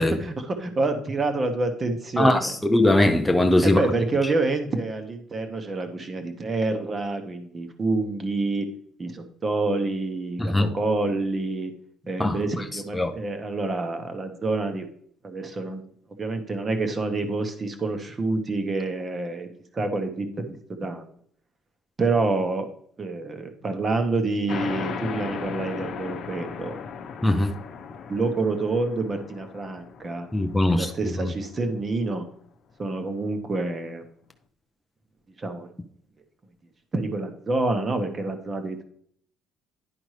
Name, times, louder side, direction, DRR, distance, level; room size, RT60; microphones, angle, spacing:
voice 1, 0.0-2.5 3.6-8.7 9.0-11.7 12.1-14.9 15.2-15.8 16.2-19.5 19.7-21.0 22.0-22.7 23.0-26.7 28.1-30.3 30.7-32.2 32.8-34.1 35.4-35.7 36.9-38.8, right 3 dB, 20° right, 0.9 m, -27 dB
voice 2, 2.2-3.8 10.4-10.7 12.2-12.3 12.9-13.1 27.2-27.5 30.3-30.9 31.2-31.3, left 1 dB, 5° left, 0.4 m, -20 dB
sound 1, 24.5-31.6, left 6 dB, 50° left, 0.8 m, -36 dB
10.5 x 5.1 x 3.2 m
cardioid pair, 175°, 0 cm